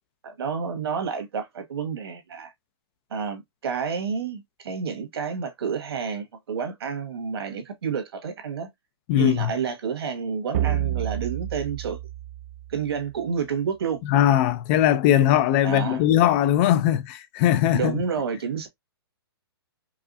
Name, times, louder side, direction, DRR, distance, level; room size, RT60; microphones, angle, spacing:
voice 1, 0.2-2.5 3.1-8.7 9.2-12.0 12.7-14.0 15.6-16.0 17.7-18.7, right 6 dB, 70° right, 1.6 m, -29 dB
voice 2, 9.1-9.5 14.1-18.0, left 11 dB, 30° left, 0.4 m, -20 dB
sound 1, 10.5-13.2, right 11 dB, 40° right, 0.4 m, -29 dB
4.8 x 2.3 x 2.5 m
hypercardioid pair, 150°, 13 cm